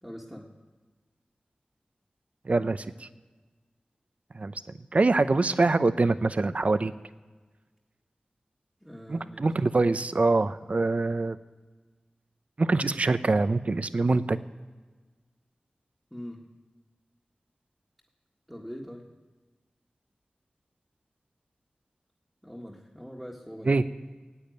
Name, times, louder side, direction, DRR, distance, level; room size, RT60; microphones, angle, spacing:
voice 1, 0.0-0.4 8.8-9.5 16.1-16.4 18.5-19.0 22.4-23.8, equal, ahead, -4 dB, 1.7 m, -42 dB
voice 2, 2.4-3.1 4.3-4.6 4.9-6.9 9.1-11.4 12.6-14.4 23.6-23.8, right 3 dB, 50° right, 13 dB, 0.6 m, -24 dB
15.5 x 8.7 x 9.3 m, 1.3 s
wide cardioid pair, 70°, 3 cm